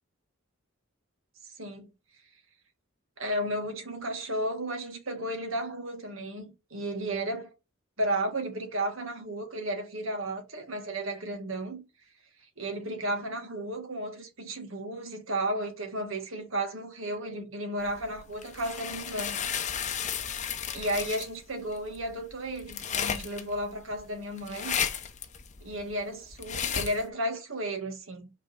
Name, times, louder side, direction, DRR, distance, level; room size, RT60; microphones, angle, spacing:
voice 1, 1.6-1.9 3.2-7.5 8.0-11.8 12.6-19.4 20.7-24.8 25.6-28.3, right 1 dB, 75° right, 2.0 m, -33 dB
sound 1, 17.9-27.1, left 8 dB, 35° left, 0.8 m, -34 dB
5.8 x 4.4 x 5.5 m
head